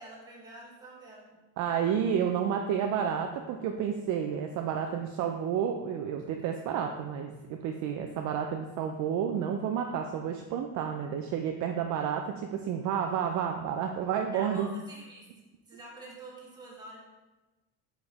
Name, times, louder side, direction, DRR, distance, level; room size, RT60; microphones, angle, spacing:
voice 1, 0.0-1.4 14.3-15.2 15.7-17.0, right 2 dB, 10° right, -5 dB, 1.4 m, -47 dB
voice 2, 1.6-14.7, right 8 dB, 50° right, 4 dB, 0.4 m, -30 dB
5.1 x 4.9 x 4.1 m, 1.1 s
cardioid pair, 170°, 39 cm